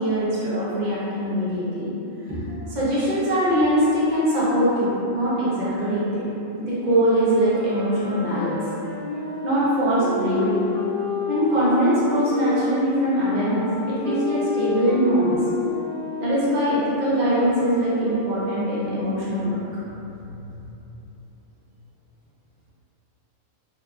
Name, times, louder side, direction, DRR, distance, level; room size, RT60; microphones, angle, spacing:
voice 1, 0.0-1.9 2.3-6.3 6.6-8.6 9.4-10.7 11.3-15.4 16.2-19.6, equal, 55° right, -9 dB, 0.5 m, -22 dB
sound 1, 6.7-12.6 13.3-18.7, left 2 dB, 85° right, 1.0 m, -30 dB
2.8 x 2.4 x 2.3 m, 2.9 s
omnidirectional pair, 1.4 m